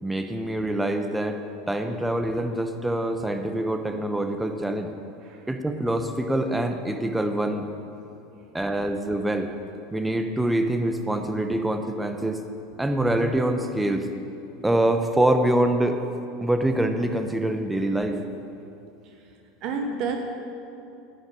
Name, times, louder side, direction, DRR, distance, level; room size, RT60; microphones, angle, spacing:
voice 1, 0.0-1.4 1.7-4.9 5.5-7.6 8.5-9.5 9.9-12.4 12.8-14.1 14.6-16.0 16.4-18.2, right 1 dB, 10° right, 6 dB, 0.9 m, -25 dB
voice 2, 19.6-20.2, right 4 dB, 55° right, 3 dB, 1.0 m, -30 dB
11.5 x 5.8 x 8.0 m, 2.7 s
hypercardioid pair, 80°, 0 cm